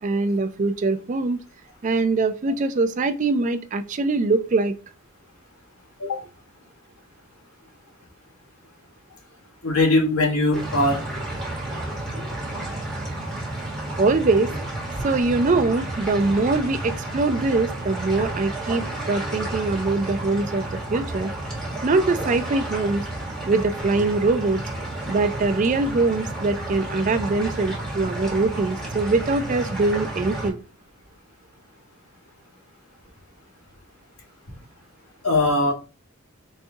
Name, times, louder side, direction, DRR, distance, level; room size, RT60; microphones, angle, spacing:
voice 1, 0.0-1.4 1.8-4.8 14.0-14.5 15.0-21.3 21.8-23.1 23.5-24.6 25.1-30.6, right 3 dB, 35° right, 0.3 m, -23 dB
voice 2, 9.6-11.0 14.9-15.0 35.2-35.7, left 2 dB, 90° left, 1.3 m, -20 dB
sound 1, 10.5-30.5, right 1 dB, ahead, 1.4 m, -31 dB
4.1 x 2.6 x 3.5 m
head